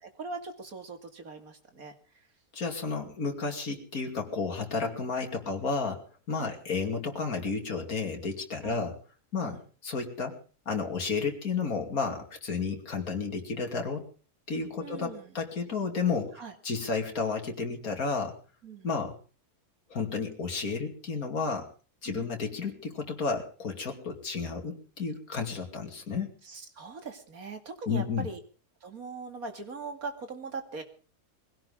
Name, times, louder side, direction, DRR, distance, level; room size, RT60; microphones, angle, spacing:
voice 1, 0.1-2.2 6.4-6.6 8.6-8.8 9.4-9.6 14.8-15.3 16.4-16.5 18.6-18.9 22.1-22.3 26.4-28.4 28.8-30.8, right 4 dB, 65° right, 6 dB, 2.9 m, -41 dB
voice 2, 2.5-6.0 6.3-8.9 9.3-10.4 10.7-14.1 14.5-16.3 16.6-18.3 18.8-19.2 19.9-21.7 22.0-26.3 27.9-28.3, left 4 dB, 65° left, 3 dB, 3.1 m, -32 dB
22.5 x 17.0 x 3.7 m, 0.37 s
omnidirectional pair, 1.7 m